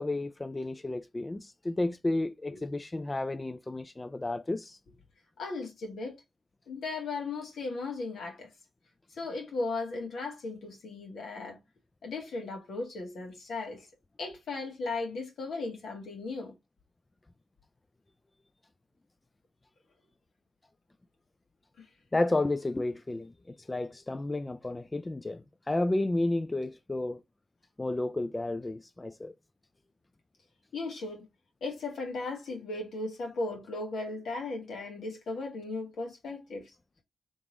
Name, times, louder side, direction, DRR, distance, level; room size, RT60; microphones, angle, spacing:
voice 1, 0.0-4.8 22.1-27.2 27.8-29.3, left 2 dB, 25° left, 0.4 m, -32 dB
voice 2, 5.4-6.2 6.7-8.5 9.1-11.6 12.0-13.9 14.2-16.5 21.8-21.9 30.7-31.3 31.6-36.7, left 3 dB, 75° left, 1.7 m, -36 dB
3.8 x 3.5 x 3.0 m
supercardioid pair, 45°, 0 cm